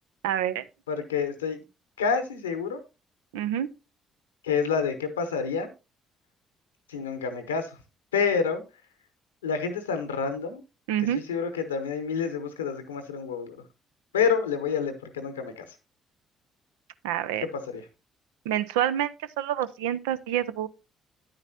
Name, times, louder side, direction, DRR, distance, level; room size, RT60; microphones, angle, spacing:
voice 1, 0.2-0.6 3.3-3.7 10.9-11.2 17.0-17.5 18.5-20.7, right 11 dB, 80° right, 0.4 m, -27 dB
voice 2, 0.9-1.6 2.0-2.8 4.4-5.7 6.9-7.8 8.1-8.6 9.4-10.6 11.0-13.6 14.1-15.7 17.4-17.8, left 6 dB, 90° left, 0.8 m, -28 dB
9.7 x 8.8 x 2.7 m
hypercardioid pair, 45°, 0 cm